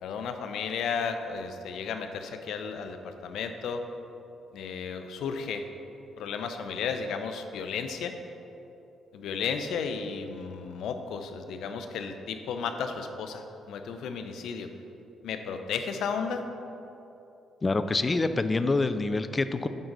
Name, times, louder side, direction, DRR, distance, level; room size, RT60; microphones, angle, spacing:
voice 1, 0.0-3.9 4.5-5.6 6.2-8.2 9.1-14.7 15.2-16.4, left 6 dB, 75° left, 7 dB, 0.6 m, -33 dB
voice 2, 17.6-19.7, left 3 dB, 25° left, 11 dB, 0.4 m, -26 dB
9.1 x 3.8 x 6.0 m, 2.9 s
cardioid pair, 90°, 0 cm